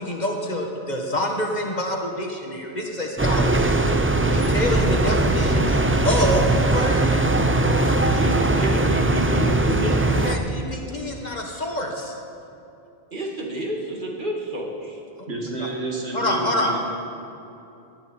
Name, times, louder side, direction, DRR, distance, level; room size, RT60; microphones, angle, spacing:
voice 1, 0.0-3.6 4.3-5.7 6.0-7.3 10.2-12.1 16.1-16.8, left 1 dB, 45° left, 1 dB, 1.6 m, -26 dB
sound 1, 3.2-10.4, right 2 dB, 15° right, 0.5 m, -20 dB
voice 2, 8.0-10.1 13.1-15.0, right 1 dB, 55° right, -1 dB, 2.2 m, -29 dB
voice 3, 15.3-16.8, right 2 dB, 90° right, -2 dB, 2.5 m, -30 dB
18.0 x 11.0 x 4.4 m, 2.8 s
omnidirectional pair, 1.0 m